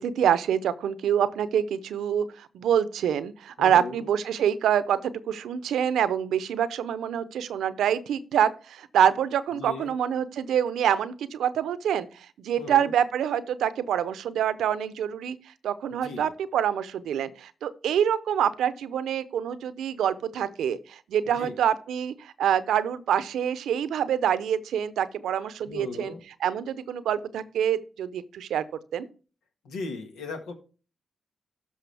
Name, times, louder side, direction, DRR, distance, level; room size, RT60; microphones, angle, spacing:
voice 1, 0.0-12.1 12.4-15.4 15.6-26.1 26.4-28.6 28.9-29.1, right 9 dB, 80° right, 15 dB, 0.7 m, -26 dB
voice 2, 3.6-4.0 9.6-9.9 12.6-12.9 15.9-16.3 21.2-21.5 25.6-26.2 29.6-30.5, left 3 dB, 85° left, 4 dB, 1.6 m, -37 dB
12.5 x 5.1 x 3.4 m, 0.35 s
supercardioid pair, 40°, 0 cm